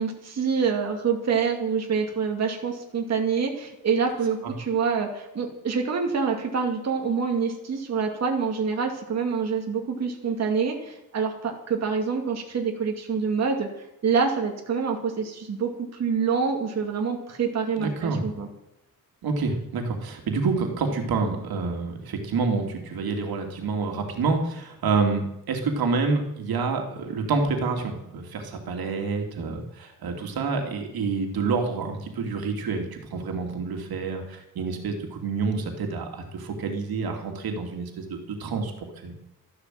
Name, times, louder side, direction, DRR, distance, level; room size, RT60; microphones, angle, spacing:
voice 1, 0.0-13.7 14.0-18.5, right 5 dB, 45° right, 2 dB, 2.4 m, -26 dB
voice 2, 17.8-18.2 19.2-38.7 39.0-39.1, right 4 dB, 85° right, 3 dB, 2.7 m, -28 dB
13.5 x 12.0 x 7.6 m, 0.84 s
wide cardioid pair, 175°, 36 cm